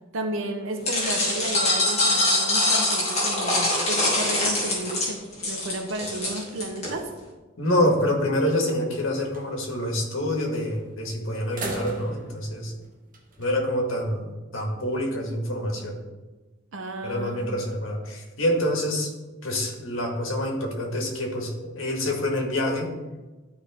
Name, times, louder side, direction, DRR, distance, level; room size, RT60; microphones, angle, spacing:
voice 1, 0.1-7.1 16.7-17.5, right 2 dB, 75° right, 5 dB, 0.8 m, -33 dB
sound 1, 0.8-6.9, left 2 dB, 30° left, 2.7 m, -23 dB
voice 2, 7.6-12.7 13.4-16.0 17.0-19.1 19.4-22.9, left 1 dB, 80° left, 1 dB, 1.9 m, -26 dB
sound 2, 7.9-8.4 8.8-8.9 9.2-9.5 10.5-10.9 11.4-13.6, right 2 dB, 40° right, 1.1 m, -38 dB
12.0 x 4.8 x 3.7 m, 1.2 s
head